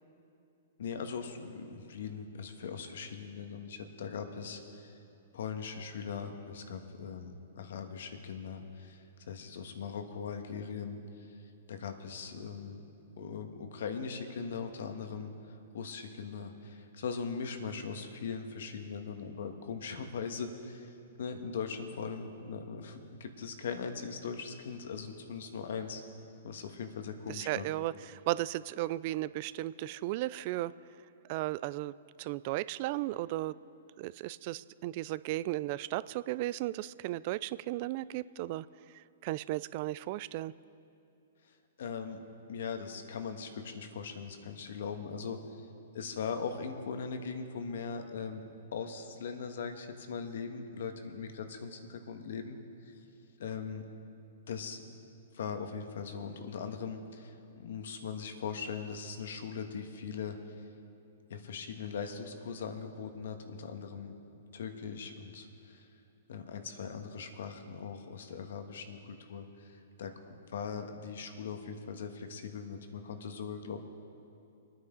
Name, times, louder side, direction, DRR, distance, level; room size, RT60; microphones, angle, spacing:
voice 1, 0.8-4.9 5.3-11.4 11.7-12.8 13.2-26.0 26.4-27.7 41.8-42.2 42.5-45.4 45.9-48.4 48.7-52.6 53.4-53.8 54.5-54.8 55.3-60.4 61.3-64.1 64.5-65.8 66.3-73.8, left 6 dB, 70° left, 6 dB, 1.4 m, -40 dB
voice 2, 27.3-30.7 31.3-33.5 34.0-38.7 38.9-40.5, right 16 dB, 45° right, 18 dB, 0.3 m, -35 dB
22.5 x 9.5 x 3.9 m, 2.7 s
hypercardioid pair, 130°, 0 cm